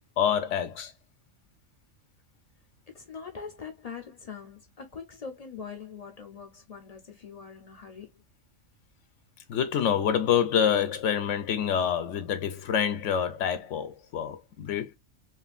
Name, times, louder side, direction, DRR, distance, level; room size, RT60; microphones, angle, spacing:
voice 1, 0.2-0.9 9.5-14.9, left 8 dB, 75° left, 0.9 m, -27 dB
voice 2, 2.9-8.1, left 6 dB, 45° left, 0.5 m, -42 dB
3.1 x 2.4 x 2.4 m
omnidirectional pair, 1.3 m